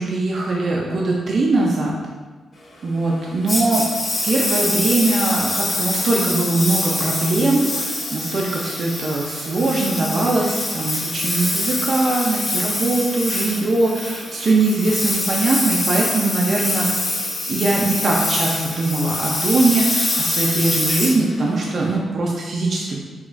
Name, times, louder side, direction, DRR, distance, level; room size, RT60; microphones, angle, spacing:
voice 1, 0.0-1.9 2.8-3.9 4.2-7.8 8.1-16.9 17.5-23.0, right 2 dB, 45° right, -3 dB, 0.4 m, -21 dB
Engine, 3.5-21.9, left 2 dB, 45° left, 1.1 m, -25 dB
4.8 x 2.3 x 2.5 m, 1.4 s
wide cardioid pair, 150°, 0 cm